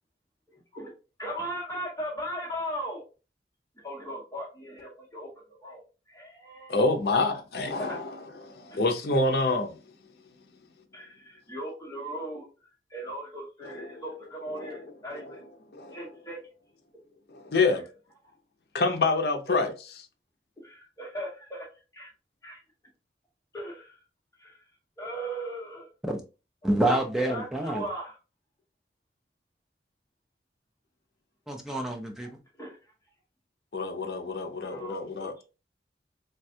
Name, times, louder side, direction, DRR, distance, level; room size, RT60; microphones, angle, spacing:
voice 1, 0.5-0.9 1.2-3.0 3.8-5.3 5.6-6.7 7.8-8.0 10.9-12.5 12.9-15.4 15.9-16.4 17.7-17.9 20.6-21.7 21.9-22.1 22.4-22.6 23.5-24.0 24.4-24.6 25.0-25.9 26.8-26.9 27.2-28.2 32.6-32.8 34.6-35.4, right 1 dB, 20° left, 0.8 m, -38 dB
voice 2, 6.7-9.8 13.6-14.0 14.5-15.4 15.7-16.0 17.3-17.8 18.7-19.7 33.7-35.3, left 3 dB, 60° left, 0.5 m, -27 dB
voice 3, 26.6-27.8 31.5-32.4, right 1 dB, ahead, 0.4 m, -27 dB
3.3 x 2.2 x 2.6 m
head